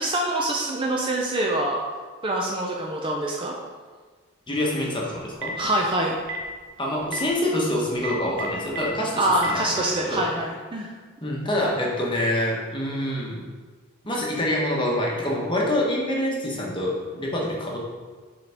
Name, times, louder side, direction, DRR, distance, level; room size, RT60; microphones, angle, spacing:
voice 1, 0.0-1.8 2.2-3.5 5.6-6.2 9.2-10.9, right 1 dB, 20° right, -1 dB, 0.5 m, -25 dB
voice 2, 4.5-5.6 6.8-10.2 11.2-13.4 14.1-17.8, left 1 dB, 20° left, -3 dB, 1.0 m, -26 dB
Telephone, 5.2-5.6 6.2-6.4 7.0-7.2 7.9-8.8 9.3-9.5, right 6 dB, 55° right, 0.8 m, -32 dB
6.7 x 4.1 x 3.4 m, 1.4 s
head